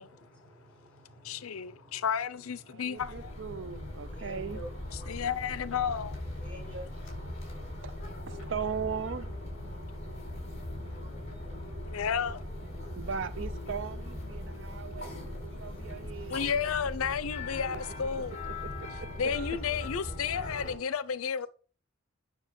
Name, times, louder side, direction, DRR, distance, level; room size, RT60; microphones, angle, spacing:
voice 1, 0.0-3.1 4.1-6.9 15.0-16.9 20.1-20.8, right 1 dB, 5° left, 5.2 m, -51 dB
voice 2, 1.2-3.3 5.1-6.2 11.9-12.4 16.3-18.5 19.2-21.5, left 7 dB, 85° left, 0.5 m, -32 dB
voice 3, 2.7-4.6 7.8-7.9 8.3-9.3 13.0-16.6 18.4-19.3, right 6 dB, 60° right, 0.5 m, -38 dB
sound 1, 3.0-20.7, left 1 dB, 30° left, 5.0 m, -40 dB
9.5 x 6.4 x 5.2 m
head